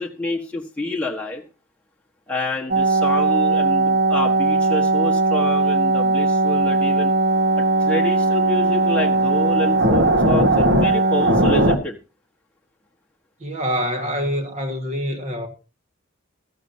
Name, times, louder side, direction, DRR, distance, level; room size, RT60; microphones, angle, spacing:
voice 1, 0.0-1.4 2.3-7.1 7.8-12.0, left 2 dB, 5° left, 1.3 m, -28 dB
sound 1, 2.7-11.8, right 2 dB, 50° right, 1.5 m, -18 dB
voice 2, 13.4-15.5, equal, 35° right, 1.6 m, -25 dB
15.5 x 13.5 x 2.8 m
head